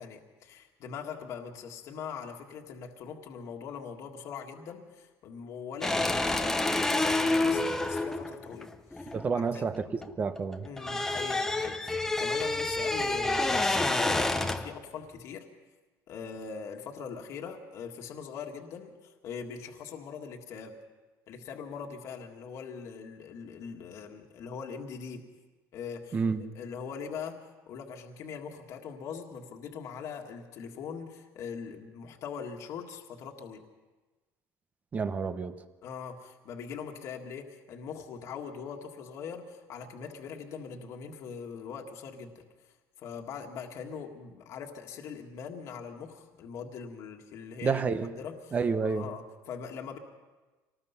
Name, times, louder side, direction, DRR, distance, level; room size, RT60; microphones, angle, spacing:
voice 1, 0.0-9.6 10.6-15.5 16.1-20.8 21.3-25.2 25.7-26.2 26.6-27.4 27.7-33.6 35.8-42.4 43.0-47.8 48.2-48.5 48.8-50.0, left 6 dB, 50° left, 2 dB, 1.8 m, -41 dB
sound 1, 5.8-10.1 10.4-14.8, left 2 dB, 5° left, 0.8 m, -28 dB
voice 2, 9.1-9.8 10.2-10.7 26.1-26.4 34.9-35.6 47.6-48.1 48.5-49.1, right 5 dB, 25° right, 11 dB, 0.9 m, -29 dB
25.5 x 19.5 x 5.7 m, 1.2 s
cardioid pair, 155°, 7 cm